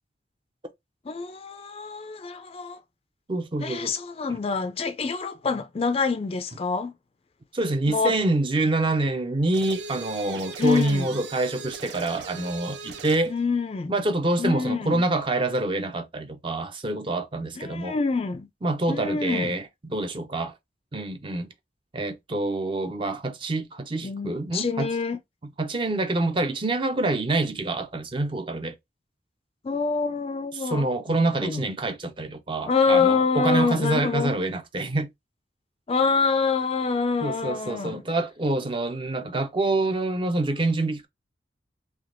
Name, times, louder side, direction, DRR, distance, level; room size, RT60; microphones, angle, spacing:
voice 1, 1.1-2.8 3.6-6.9 7.9-8.1 10.6-11.2 13.3-13.9 14.4-15.1 17.6-18.5 18.9-19.6 24.0-25.2 29.6-31.6 32.7-34.4 35.9-38.0, left 4 dB, 35° left, 0.4 m, -26 dB
voice 2, 3.3-3.9 7.5-13.3 13.9-18.0 18.6-20.5 20.9-21.5 21.9-24.9 25.6-28.7 30.6-35.1 37.2-41.1, right 2 dB, 30° right, 0.5 m, -26 dB
sound 1, 9.5-13.3, right 4 dB, 75° right, 0.6 m, -39 dB
3.3 x 2.9 x 2.5 m
head